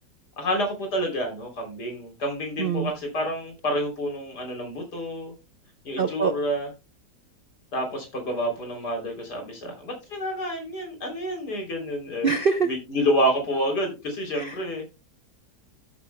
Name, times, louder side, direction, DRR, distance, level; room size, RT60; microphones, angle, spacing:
voice 1, 0.4-5.3 5.8-6.7 7.7-12.3 12.6-14.9, equal, 75° left, 3 dB, 3.9 m, -28 dB
voice 2, 2.6-2.9 6.0-6.3 12.2-12.7 14.3-14.6, right 5 dB, 50° right, 8 dB, 0.7 m, -24 dB
14.0 x 8.4 x 2.2 m, 0.27 s
omnidirectional pair, 1.8 m